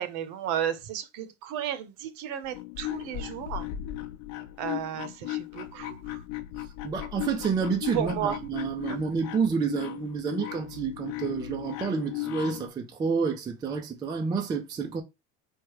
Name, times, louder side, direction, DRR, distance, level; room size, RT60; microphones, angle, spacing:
voice 1, 0.0-3.7 4.6-6.2 7.9-8.4 8.9-9.0, right 10 dB, 55° right, 0.7 m, -33 dB
sound 1, 2.4-12.7, left 14 dB, 65° left, 0.7 m, -37 dB
voice 2, 6.8-15.0, right 5 dB, 15° right, 0.3 m, -29 dB
4.7 x 2.1 x 4.6 m
cardioid pair, 155°, 35 cm